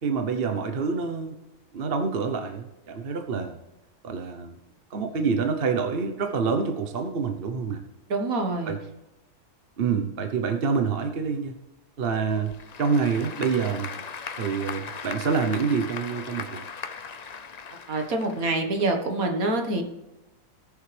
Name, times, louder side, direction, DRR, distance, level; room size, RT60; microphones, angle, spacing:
voice 1, 0.0-1.4 1.7-3.6 4.0-4.5 4.9-7.8 8.7-8.8 9.8-11.6 12.0-13.9 14.4-16.6, right 5 dB, 45° right, 6 dB, 1.0 m, -27 dB
voice 2, 8.1-8.7 17.9-19.8, right 2 dB, 60° right, 4 dB, 1.8 m, -26 dB
Applause / Crowd, 12.3-18.9, left 6 dB, 60° left, 0.4 m, -38 dB
19.5 x 7.0 x 3.3 m, 1.0 s
omnidirectional pair, 1.7 m